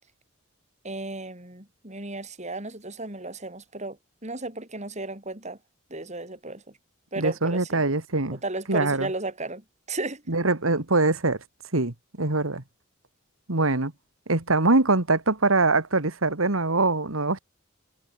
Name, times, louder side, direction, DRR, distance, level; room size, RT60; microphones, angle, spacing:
voice 1, 0.8-5.6 5.9-6.7 7.1-7.8 8.3-10.2, right 2 dB, 35° right, 6.1 m, -34 dB
voice 2, 7.2-8.4 8.7-9.1 10.3-11.4 11.7-12.6 13.5-13.9 14.3-17.4, right 3 dB, 85° right, 2.4 m, -23 dB
head